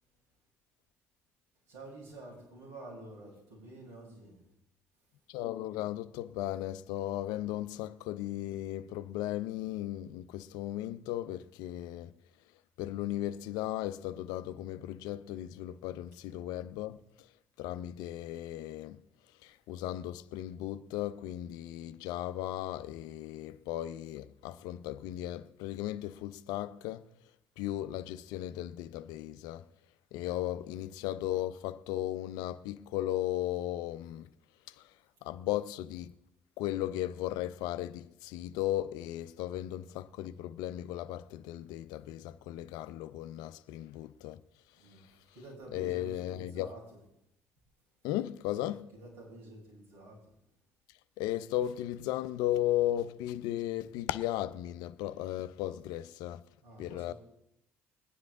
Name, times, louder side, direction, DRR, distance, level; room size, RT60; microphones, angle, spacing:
voice 1, 1.7-4.4 30.7-30.9 39.5-39.6 44.8-45.1 45.3-47.0 48.7-50.2 56.6-57.2, right 2 dB, 80° right, 6.7 m, -49 dB
voice 2, 5.3-12.1 12.8-17.3 17.6-19.0 19.4-27.1 27.6-29.7 30.1-34.3 34.7-36.1 36.6-44.4 44.9-45.1 45.7-46.7 48.0-48.9 51.2-56.4 56.8-57.1, left 13 dB, 70° left, 0.5 m, -36 dB
22.0 x 9.7 x 3.7 m
hypercardioid pair, 55°, 7 cm